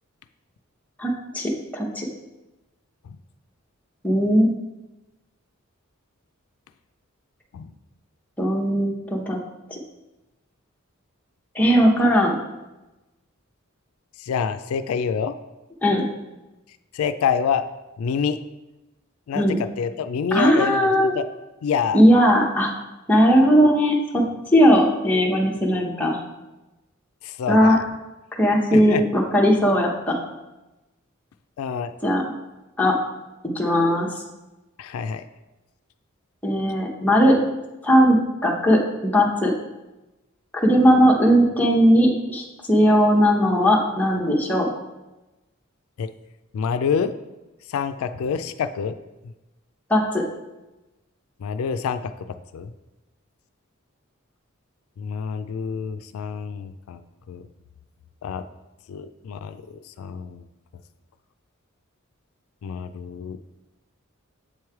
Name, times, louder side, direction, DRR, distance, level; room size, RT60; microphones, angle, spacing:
voice 1, 1.0-2.1 4.0-4.5 8.4-9.4 9.7-9.8 11.5-12.4 15.8-16.0 19.3-19.6 20.3-21.1 21.9-22.7 23.1-24.2 24.5-26.2 27.5-27.8 28.4-30.2 32.0-32.2 32.8-32.9 33.4-34.2 36.4-37.4 37.8-38.2 38.4-39.5 40.5-44.7 49.9-50.2, equal, 10° left, -2 dB, 0.8 m, -18 dB
voice 2, 14.2-15.3 16.9-17.6 18.0-18.4 19.3-21.3 21.6-22.0 27.2-27.8 28.7-29.0 31.6-31.9 34.8-35.2 46.0-46.1 46.5-47.1 47.7-48.9 51.4-52.1 52.5-52.7 55.0-57.0 57.3-57.4 58.2-58.4 58.9-60.4 62.6-63.4, left 6 dB, 90° left, 10 dB, 0.3 m, -27 dB
7.5 x 3.1 x 4.7 m, 1.0 s
head